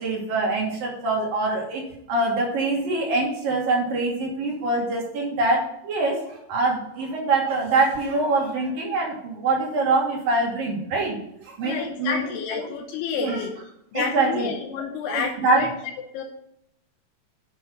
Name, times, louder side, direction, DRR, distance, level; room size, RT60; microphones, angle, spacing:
voice 1, 0.0-12.3 12.6-12.7 13.1-13.4 13.9-14.5 15.1-15.7, right 3 dB, 60° right, -2 dB, 4.2 m, -24 dB
voice 2, 11.6-13.5 13.9-15.7 16.1-16.2, left 6 dB, 85° left, 1 dB, 3.1 m, -29 dB
9.7 x 6.8 x 5.6 m, 0.76 s
omnidirectional pair, 4.6 m